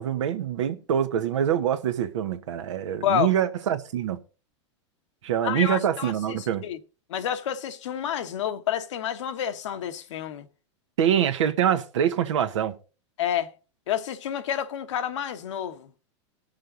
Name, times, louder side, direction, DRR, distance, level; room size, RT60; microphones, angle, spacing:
voice 1, 0.0-4.2 5.2-6.6 11.0-12.7, right 9 dB, 85° right, 1.3 m, -25 dB
voice 2, 3.0-3.3 5.4-6.8 7.1-10.5 13.2-13.5 13.9-15.9, left 10 dB, 80° left, 1.2 m, -29 dB
19.0 x 6.6 x 3.9 m
hypercardioid pair, 120°, 15 cm